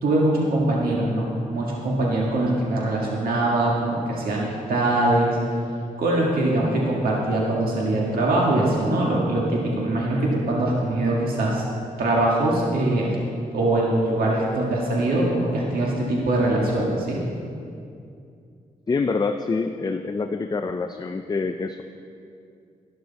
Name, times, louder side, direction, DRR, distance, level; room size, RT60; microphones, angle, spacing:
voice 1, 0.0-5.4 6.0-11.6 12.0-13.1 13.5-17.2, right 1 dB, 85° right, -3 dB, 1.7 m, -22 dB
voice 2, 18.9-21.8, left 4 dB, 25° left, 7 dB, 0.4 m, -26 dB
12.5 x 11.0 x 4.1 m, 2.5 s
cardioid pair, 100°, 15 cm